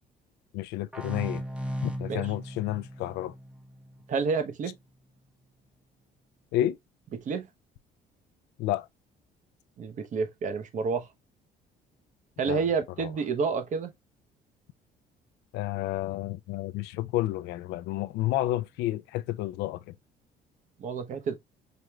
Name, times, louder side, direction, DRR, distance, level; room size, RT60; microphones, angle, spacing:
voice 1, 0.5-1.4 1.8-3.3 6.5-6.8 8.6-8.9 12.5-12.6 13.0-13.1 15.5-19.8, left 15 dB, 85° left, 0.4 m, -30 dB
sound 1, 0.9-4.4, equal, 5° right, 0.7 m, -37 dB
voice 2, 4.1-4.8 7.1-7.5 9.8-11.1 12.4-13.9 20.8-21.4, right 5 dB, 50° right, 0.8 m, -29 dB
5.0 x 3.1 x 2.3 m
cardioid pair, 110°, 17 cm